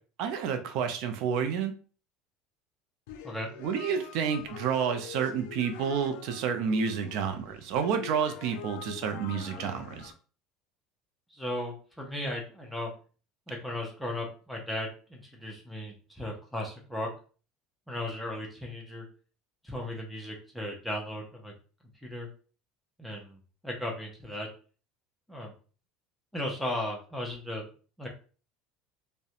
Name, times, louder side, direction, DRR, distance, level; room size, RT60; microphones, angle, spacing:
voice 1, 0.2-1.7 3.6-10.1, right 7 dB, 60° right, 7 dB, 0.4 m, -30 dB
sound 1, 3.1-10.1, left 8 dB, 90° left, 0.4 m, -44 dB
voice 2, 11.3-12.9 13.5-17.1 17.9-19.1 19.6-21.5 22.0-22.3 23.0-24.5 25.3-25.5 26.3-27.6 28.0-28.1, left 1 dB, ahead, -1 dB, 0.5 m, -36 dB
2.3 x 2.1 x 2.8 m, 0.38 s
cardioid pair, 165°, 0 cm